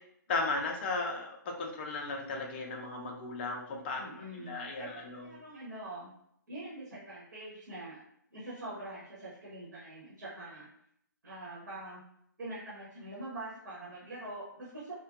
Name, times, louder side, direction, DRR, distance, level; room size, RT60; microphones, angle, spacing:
voice 1, 0.3-4.0 4.4-5.3, left 3 dB, 30° left, 1 dB, 0.5 m, -35 dB
voice 2, 4.0-6.1 6.5-8.0 8.3-10.7 11.2-12.0 12.4-14.9, right 1 dB, 60° right, -7 dB, 1.1 m, -44 dB
2.5 x 2.2 x 2.6 m, 0.72 s
figure-of-eight pair, 135°, 11 cm